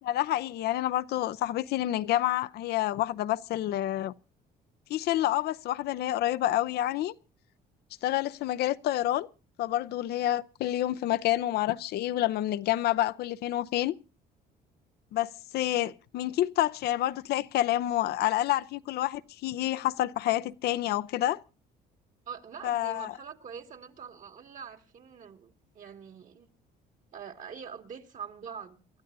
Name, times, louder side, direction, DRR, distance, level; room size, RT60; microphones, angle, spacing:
voice 1, 0.0-4.1 4.9-7.1 8.0-9.3 9.6-14.0 15.1-21.4 22.6-23.1, left 14 dB, 70° left, 0.7 m, -28 dB
voice 2, 22.3-26.5 27.1-28.8, right 7 dB, 50° right, 2.3 m, -44 dB
28.5 x 13.0 x 2.7 m
cardioid pair, 110°, 17 cm